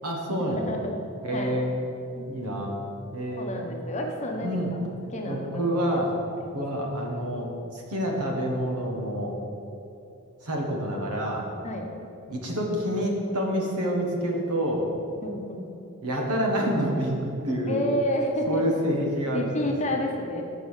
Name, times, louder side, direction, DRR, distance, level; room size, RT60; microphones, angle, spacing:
voice 1, 0.0-0.7 1.2-1.7 2.3-2.7 3.1-3.6 4.4-4.7 5.2-6.2 6.5-7.5 7.7-9.4 10.4-11.5 12.3-14.9 16.0-17.9 18.5-19.7, equal, 90° right, 0 dB, 1.3 m, -28 dB
voice 2, 0.6-0.9 1.3-1.6 2.1-2.3 3.4-4.8 5.1-5.8 6.4-6.6 11.6-11.8 15.2-15.7 17.7-18.6 19.3-20.4, left 1 dB, 30° left, 1 dB, 0.8 m, -30 dB
6.0 x 5.2 x 6.5 m, 2.7 s
head